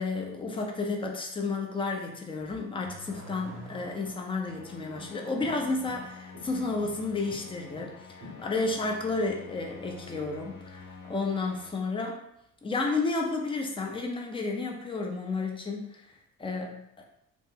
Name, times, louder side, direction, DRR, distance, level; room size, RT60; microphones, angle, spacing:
voice 1, 0.0-12.2 12.6-16.0 16.4-17.0, left 3 dB, 15° left, 1 dB, 0.6 m, -32 dB
Car / Accelerating revving vroom, 2.3-4.5, right 3 dB, 45° right, 0.9 m, -47 dB
sound 1, 3.5-9.4, equal, 80° right, 1.1 m, -51 dB
sound 2, 4.4-11.7, left 5 dB, 85° left, 0.7 m, -47 dB
3.0 x 2.1 x 3.6 m, 0.79 s
cardioid pair, 90°, 30 cm